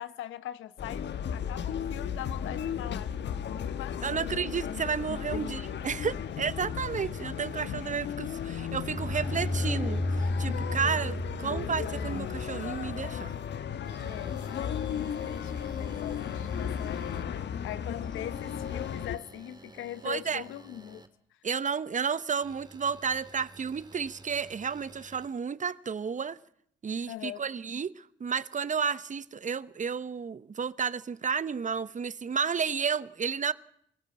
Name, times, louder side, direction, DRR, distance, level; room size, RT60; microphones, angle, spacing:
voice 1, 0.0-4.2 5.3-5.4 6.1-6.3 14.0-21.0 27.1-27.4, left 12 dB, 80° left, 1.0 m, -42 dB
sound 1, 0.8-19.2, left 8 dB, 65° left, 1.3 m, -35 dB
voice 2, 4.0-13.3 20.0-20.4 21.4-26.4 26.8-33.5, right 6 dB, 40° right, 0.9 m, -32 dB
sound 2, 8.9-15.7 16.4-16.8 17.1-17.2 17.6-19.0, left 1 dB, 5° left, 3.9 m, -34 dB
sound 3, 13.8-17.2 18.3-21.1 22.4-25.3, right 2 dB, 20° right, 2.3 m, -53 dB
26.0 x 15.5 x 7.5 m
supercardioid pair, 65°, 20 cm